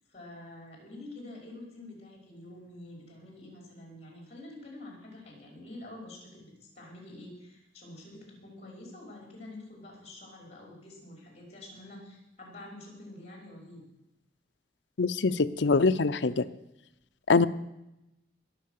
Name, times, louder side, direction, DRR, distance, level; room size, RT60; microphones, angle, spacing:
voice 1, 0.1-13.9, left 1 dB, 35° left, -1 dB, 5.3 m, -47 dB
voice 2, 15.0-16.4 17.3-17.5, left 4 dB, 80° left, 12 dB, 0.6 m, -24 dB
21.5 x 7.6 x 6.6 m, 0.90 s
head